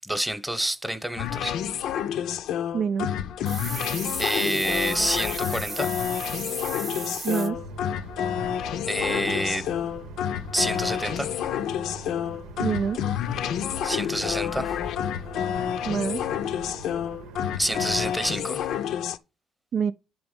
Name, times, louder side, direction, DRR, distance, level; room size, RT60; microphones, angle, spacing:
voice 1, 0.0-1.5 4.2-5.9 8.9-9.7 10.5-11.3 13.8-14.8 17.6-18.7, right 1 dB, 5° right, 1.0 m, -28 dB
sound 1, 1.2-19.2, left 9 dB, 75° left, 0.5 m, -29 dB
voice 2, 2.7-3.1 7.2-7.6 12.6-13.1 15.8-16.2 19.7-19.9, right 7 dB, 60° right, 0.4 m, -26 dB
sound 2, 3.5-7.5, right 4 dB, 35° right, 0.8 m, -35 dB
sound 3, 7.5-18.1, right 2 dB, 90° right, 1.0 m, -42 dB
9.3 x 3.6 x 5.2 m
supercardioid pair, 80°, 0 cm